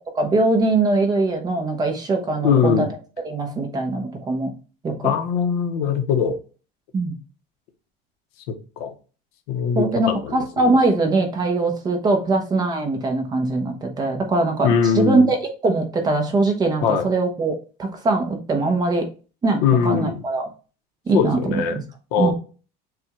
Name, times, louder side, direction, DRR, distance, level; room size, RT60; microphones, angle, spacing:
voice 1, 0.1-2.9 3.2-4.5 4.8-5.1 6.9-7.1 9.7-15.4 15.6-19.1 19.4-20.5 21.1-21.8 22.2-22.3, right 3 dB, 20° right, 3 dB, 0.9 m, -21 dB
voice 2, 2.4-2.9 5.0-6.4 8.5-8.9 9.5-10.8 14.6-15.3 16.8-17.1 19.6-20.2 21.1-21.8 22.1-22.3, left 6 dB, 85° left, 6 dB, 0.9 m, -21 dB
6.8 x 2.4 x 3.0 m, 0.35 s
cardioid pair, 165°, 19 cm